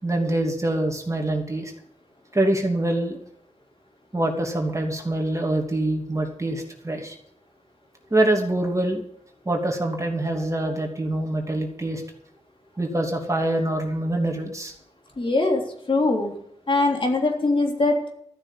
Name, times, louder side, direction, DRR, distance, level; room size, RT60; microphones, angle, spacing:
voice 1, 0.0-1.7 2.3-3.2 4.1-7.2 8.1-9.0 9.4-12.0 12.8-14.7, right 1 dB, 25° right, 1 dB, 2.9 m, -25 dB
voice 2, 15.2-15.6 15.9-16.3 16.7-18.0, left 2 dB, 45° left, 1 dB, 3.4 m, -21 dB
13.5 x 6.7 x 9.9 m, 0.71 s
cardioid pair, 65°, 12 cm